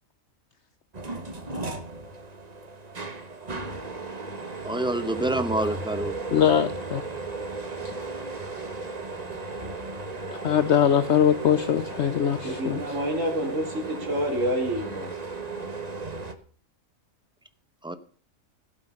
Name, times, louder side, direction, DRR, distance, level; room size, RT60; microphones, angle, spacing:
sound 1, 0.9-16.3, right 3 dB, 30° right, 1.4 m, -35 dB
voice 1, 4.6-6.2 17.8-17.9, right 2 dB, 5° right, 0.8 m, -27 dB
voice 2, 6.3-7.0 7.8-7.9 10.3-12.8, left 9 dB, 60° left, 1.0 m, -22 dB
voice 3, 12.4-15.1, equal, 65° right, 3.5 m, -28 dB
17.0 x 8.2 x 5.5 m
omnidirectional pair, 1.4 m